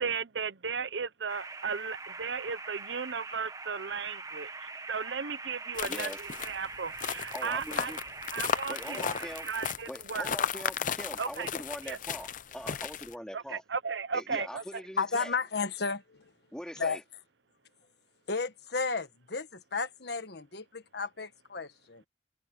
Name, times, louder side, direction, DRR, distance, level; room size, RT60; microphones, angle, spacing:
voice 1, 0.0-7.9 8.3-10.6 11.2-11.5 11.8-12.0 13.3-14.8, right 5 dB, 75° right, 0.9 m, -36 dB
sound 1, 1.3-9.7, right 3 dB, 20° right, 1.4 m, -43 dB
sound 2, 5.8-13.1, left 7 dB, 45° left, 0.6 m, -35 dB
voice 2, 5.8-6.2 7.3-8.0 8.7-9.5 9.9-13.6 14.1-15.4 16.5-17.0, equal, 5° left, 3.5 m, -42 dB
voice 3, 15.0-16.3 16.8-17.0 18.3-22.0, left 4 dB, 65° left, 1.5 m, -33 dB
head